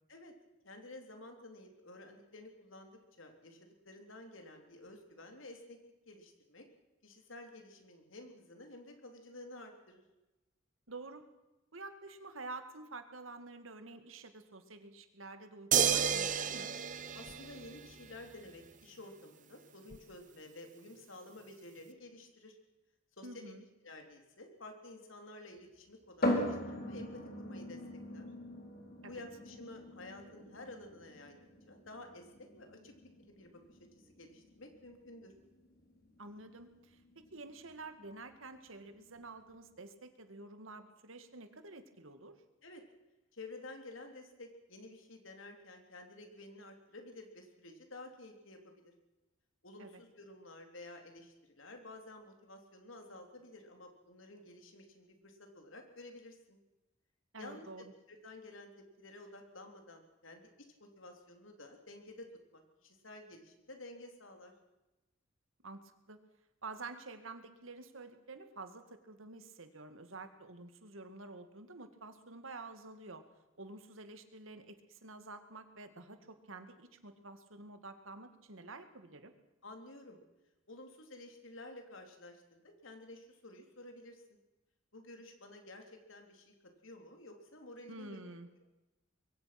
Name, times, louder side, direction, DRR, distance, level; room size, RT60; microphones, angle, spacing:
voice 1, 0.6-5.8 6.1-6.7 7.0-10.0 17.1-22.6 23.2-23.5 23.8-27.8 28.1-28.3 29.1-31.4 31.7-32.9 33.2-35.3 42.6-42.8 43.3-48.9 49.6-56.6 57.4-60.5 60.8-64.5 79.6-80.2 80.7-84.2 84.9-86.5 86.8-88.2, left 2 dB, 75° left, 4 dB, 3.6 m, -52 dB
voice 2, 10.9-11.3 11.7-16.7 23.2-23.6 29.0-29.2 36.2-42.4 49.8-50.0 57.3-57.9 65.6-66.2 66.6-73.2 73.6-79.3 87.9-88.5, right 3 dB, 85° right, 8 dB, 2.2 m, -49 dB
sound 1, 15.7-18.2 19.9-20.0, right 7 dB, 40° right, 1.2 m, -31 dB
sound 2, 26.2-39.7, left 1 dB, 50° left, 4.4 m, -41 dB
25.0 x 22.0 x 6.1 m, 1.0 s
head